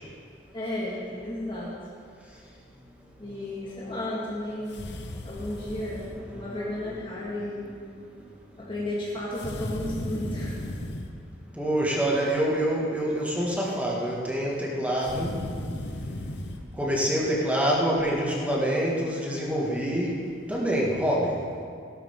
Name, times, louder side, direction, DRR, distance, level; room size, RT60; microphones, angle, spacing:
voice 1, 0.5-1.7 3.2-4.9 5.2-7.7 8.6-10.6, left 1 dB, 30° left, -7 dB, 2.1 m, -33 dB
sound 1, 4.7-6.2 9.4-11.2 15.0-16.6, left 1 dB, 70° left, 1.0 m, -35 dB
voice 2, 6.2-6.6 11.6-15.3 16.8-20.2 20.5-21.4, equal, 10° right, -4 dB, 2.1 m, -26 dB
16.5 x 12.5 x 3.9 m, 2.3 s
head